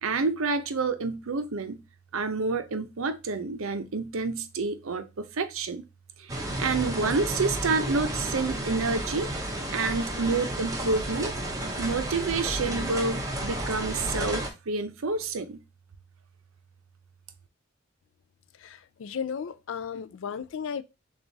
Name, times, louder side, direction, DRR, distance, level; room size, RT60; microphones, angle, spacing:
voice 1, 0.0-1.8 2.1-5.9 6.2-9.3 9.7-11.3 11.8-15.6, right 4 dB, 75° right, 0.6 m, -29 dB
sound 1, 6.3-14.5, right 1 dB, 15° right, 0.7 m, -32 dB
voice 2, 18.5-20.8, left 7 dB, 60° left, 0.3 m, -35 dB
6.9 x 2.4 x 2.6 m
head